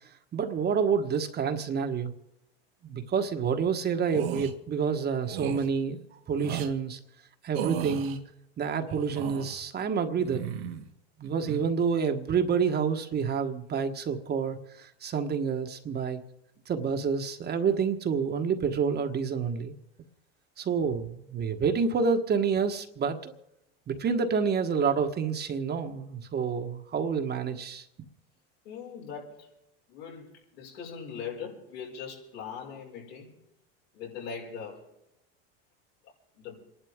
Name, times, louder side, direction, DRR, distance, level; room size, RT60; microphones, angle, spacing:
voice 1, 0.3-2.1 2.8-7.0 7.4-8.2 8.6-10.4 11.2-16.2 16.7-19.7 20.6-23.3 23.9-27.8, right 6 dB, 35° right, 6 dB, 1.4 m, -28 dB
sound 1, 4.1-4.5 5.3-5.7 6.4-6.7 7.5-8.2 8.9-9.6 10.2-10.9 11.2-11.6, right 9 dB, 80° right, 1.6 m, -35 dB
voice 2, 28.6-29.5 29.9-33.3 33.9-34.8 36.4-36.6, left 6 dB, 80° left, -2 dB, 5.8 m, -40 dB
28.0 x 11.5 x 3.7 m, 0.84 s
hypercardioid pair, 95°, 30 cm